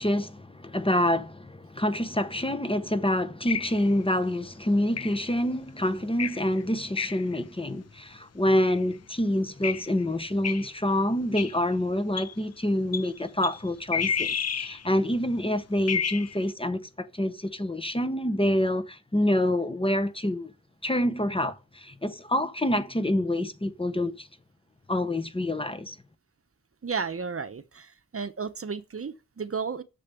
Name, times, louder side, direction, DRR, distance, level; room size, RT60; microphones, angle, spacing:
voice 1, 0.0-20.5 20.8-24.3 24.9-26.0, left 1 dB, 20° left, 0.9 m, -27 dB
sound 1, 3.5-3.9 5.0-5.3 6.2-6.6 7.0-7.4 8.6-8.8 9.6-9.9 10.4-10.7 11.4-11.6 12.2-12.3 12.9-13.1 13.4-13.6 13.9-14.8 15.9-16.4, left 7 dB, 60° left, 0.6 m, -30 dB
voice 2, 26.8-29.8, right 5 dB, 50° right, 0.8 m, -33 dB
6.9 x 6.7 x 6.8 m
wide cardioid pair, 90°, 29 cm